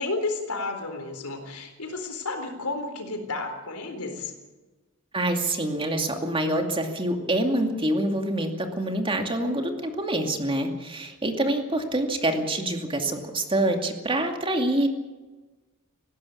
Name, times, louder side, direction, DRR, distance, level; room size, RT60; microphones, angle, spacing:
voice 1, 0.0-4.3, left 3 dB, 80° left, 5 dB, 4.1 m, -32 dB
voice 2, 5.1-14.9, right 1 dB, 25° right, 4 dB, 2.4 m, -26 dB
19.0 x 16.5 x 8.6 m, 1.2 s
head